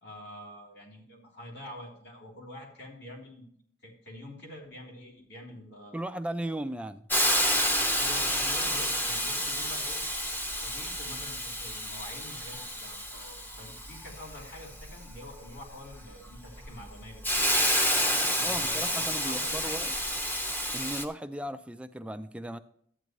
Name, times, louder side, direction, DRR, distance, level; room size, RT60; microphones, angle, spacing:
voice 1, 0.0-3.5 3.8-6.0 8.0-10.0 10.6-17.2 18.3-19.7, left 1 dB, 60° left, -1 dB, 3.2 m, -46 dB
voice 2, 5.9-7.0 18.4-19.9 20.7-22.6, right 1 dB, 5° right, 10 dB, 0.4 m, -36 dB
Hiss, 7.1-21.0, equal, 10° left, 0.8 m, -30 dB
12.0 x 9.1 x 3.1 m, 0.64 s
head